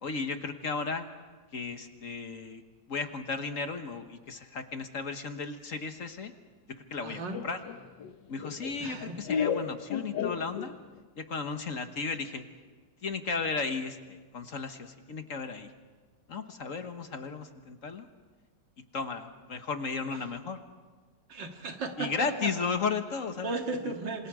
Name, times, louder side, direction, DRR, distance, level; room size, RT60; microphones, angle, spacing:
voice 1, 0.0-1.1 1.5-2.6 2.9-6.3 6.7-7.6 8.3-10.8 11.2-12.4 13.0-15.7 16.3-18.1 18.9-20.6 22.0-23.6 23.8-23.9, left 4 dB, 50° left, 7 dB, 1.4 m, -35 dB
voice 2, 7.0-7.4 8.8-9.2 21.3-22.5 23.4-24.3, right 3 dB, 80° right, 4 dB, 2.5 m, -35 dB
Laughter, 7.3-11.0, left 7 dB, 80° left, 1.7 m, -33 dB
27.5 x 26.5 x 4.9 m, 1.4 s
omnidirectional pair, 1.9 m